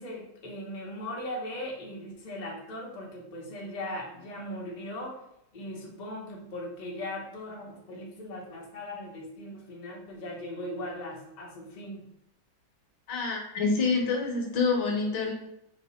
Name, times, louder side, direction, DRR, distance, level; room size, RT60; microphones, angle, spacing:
voice 1, 0.0-5.2 5.5-12.1, left 1 dB, 45° left, -3 dB, 0.5 m, -39 dB
voice 2, 13.1-15.3, left 4 dB, 65° left, 0 dB, 1.3 m, -27 dB
4.8 x 2.0 x 4.0 m, 0.79 s
omnidirectional pair, 2.2 m